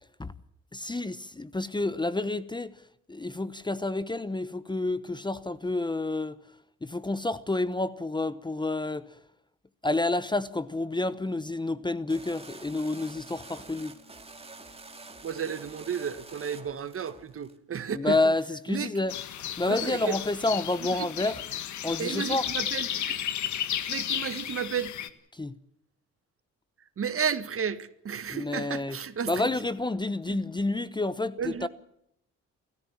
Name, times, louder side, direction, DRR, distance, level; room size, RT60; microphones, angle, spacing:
voice 1, 0.7-2.7 3.1-6.4 6.8-9.1 9.8-13.9 17.9-19.1 19.6-21.4 21.8-22.5 25.3-25.5 28.3-29.0 29.3-31.7, left 2 dB, 15° left, 0.9 m, -29 dB
sound 1, 10.9-16.1, left 7 dB, 85° left, 5.1 m, -60 dB
sound 2, 12.1-17.6, right 3 dB, 20° right, 2.5 m, -47 dB
voice 2, 15.2-18.2 18.7-18.9 19.7-20.1 21.0-21.1 22.0-23.2 23.9-24.9 27.0-29.4 30.3-30.4 31.4-31.7, right 7 dB, 45° right, 1.7 m, -32 dB
sound 3, 19.1-25.1, left 10 dB, 70° left, 1.7 m, -33 dB
29.0 x 14.0 x 7.4 m
cardioid pair, 90°, 30 cm